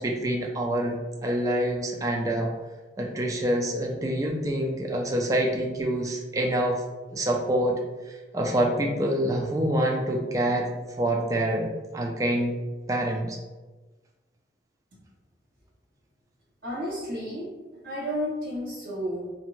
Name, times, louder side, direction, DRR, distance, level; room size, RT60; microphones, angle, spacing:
voice 1, 0.0-2.5 3.0-6.8 7.1-7.8 8.3-10.7 11.0-12.6 12.9-13.4, right 1 dB, 20° right, 0 dB, 0.3 m, -26 dB
voice 2, 16.6-17.5 17.8-19.3, equal, 55° right, -7 dB, 1.4 m, -32 dB
2.6 x 2.1 x 2.9 m, 1.2 s
head